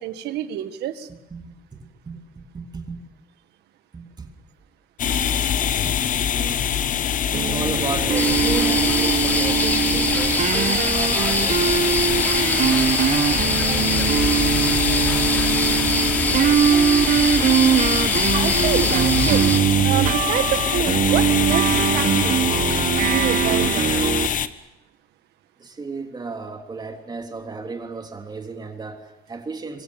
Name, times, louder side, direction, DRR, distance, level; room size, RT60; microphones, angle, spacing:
voice 1, 0.0-1.1 18.3-19.5 19.8-22.1 23.0-24.1, right 12 dB, 80° right, 1.9 m, -27 dB
voice 2, 2.5-3.0 3.9-4.3 5.8-5.9 6.3-6.7 7.3-12.3 13.6-13.9 16.3-16.6 25.6-29.8, right 4 dB, 25° right, 3.2 m, -33 dB
sound 1, 5.0-24.5, left 9 dB, 50° left, 1.1 m, -24 dB
Western electric Guitar Riff, 7.3-24.3, right 9 dB, 50° right, 1.2 m, -22 dB
sound 2, 8.2-19.6, left 1 dB, 10° left, 3.5 m, -26 dB
26.5 x 24.0 x 7.2 m
cardioid pair, 110°, 17 cm